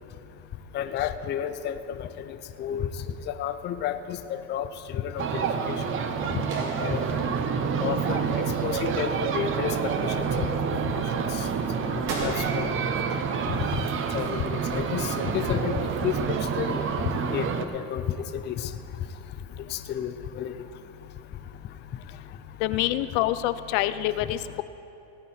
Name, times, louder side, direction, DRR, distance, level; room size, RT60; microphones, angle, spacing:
voice 1, 0.7-2.9 3.3-5.8 6.6-7.0 7.8-8.2 8.6-10.9 11.8-12.7 13.7-13.8 14.1-16.8 17.3-18.2 18.5-18.7 19.7-20.5, left 9 dB, 25° left, 9 dB, 0.4 m, -31 dB
sound 1, 5.2-17.7, right 6 dB, 30° right, 0.6 m, -28 dB
sound 2, 6.5-7.9 12.1-13.7, right 2 dB, 80° right, 3.1 m, -37 dB
sound 3, 6.9-17.5, right 6 dB, 50° right, 1.0 m, -46 dB
voice 2, 22.6-24.6, left 14 dB, 75° left, 13 dB, 0.6 m, -26 dB
17.5 x 8.9 x 4.3 m, 2.8 s
cardioid pair, 140°, 41 cm